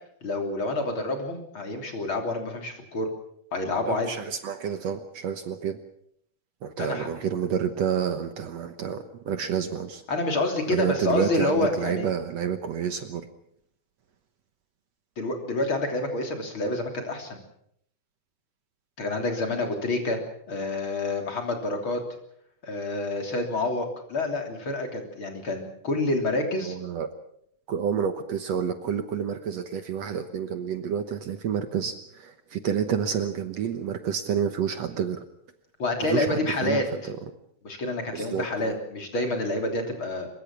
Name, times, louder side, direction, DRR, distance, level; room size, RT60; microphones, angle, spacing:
voice 1, 0.2-3.1 3.5-4.1 6.8-7.1 10.1-12.1 15.2-17.4 19.0-20.2 20.5-22.0 22.6-26.8 35.8-36.8 37.6-40.3, left 2 dB, 40° left, 3 dB, 3.9 m, -28 dB
voice 2, 3.8-5.8 6.6-10.0 10.7-13.2 26.6-27.1 27.7-35.3 36.0-37.2 38.1-38.8, right 7 dB, 65° right, 8 dB, 2.1 m, -29 dB
23.5 x 22.0 x 6.1 m, 0.69 s
omnidirectional pair, 3.6 m